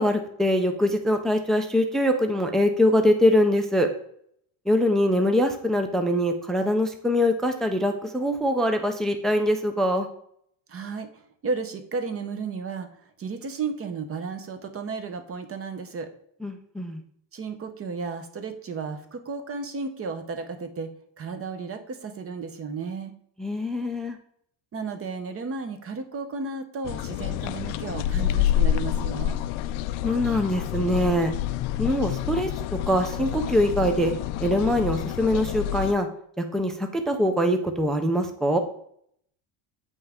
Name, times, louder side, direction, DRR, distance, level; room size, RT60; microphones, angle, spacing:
voice 1, 0.0-3.9 4.7-10.1 16.4-17.0 23.4-24.2 30.0-31.3 31.8-34.1 34.4-36.1 36.4-38.6, left 1 dB, ahead, 6 dB, 0.4 m, -23 dB
voice 2, 10.7-11.1 11.4-12.9 13.2-16.1 17.3-20.9 21.2-23.1 24.7-29.4, right 4 dB, 30° right, 8 dB, 0.8 m, -33 dB
sound 1, 26.8-35.9, left 12 dB, 85° left, 0.5 m, -28 dB
8.0 x 5.5 x 3.5 m, 0.67 s
cardioid pair, 150°, 48 cm